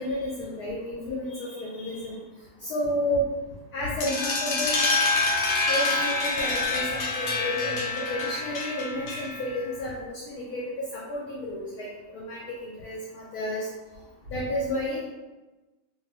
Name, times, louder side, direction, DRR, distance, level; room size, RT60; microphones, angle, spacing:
voice 1, 0.0-2.2 2.6-3.2 3.7-4.9 5.7-10.6 10.9-11.9 12.1-13.7 14.3-15.0, left 1 dB, 65° left, -5 dB, 1.0 m, -31 dB
sound 1, 4.0-9.5, left 3 dB, 80° left, 1.3 m, -27 dB
2.9 x 2.6 x 2.7 m, 1.1 s
omnidirectional pair, 2.1 m